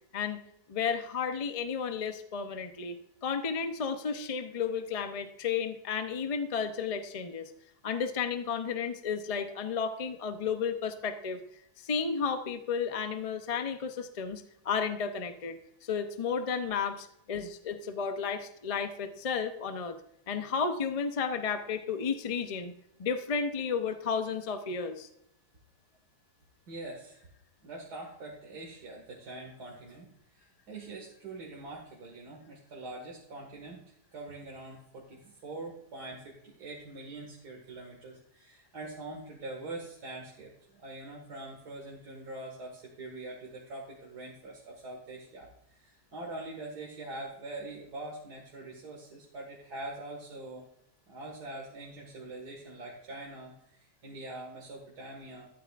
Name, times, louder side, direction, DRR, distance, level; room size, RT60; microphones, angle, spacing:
voice 1, 0.7-3.0 3.2-7.5 7.8-11.4 11.8-20.0 20.3-22.7 23.0-25.1, left 6 dB, 35° left, 8 dB, 0.5 m, -33 dB
voice 2, 26.7-27.2 27.6-33.8 34.1-50.7 51.1-55.5, right 2 dB, 85° right, -1 dB, 2.4 m, -44 dB
13.5 x 11.5 x 2.5 m, 0.77 s
omnidirectional pair, 1.7 m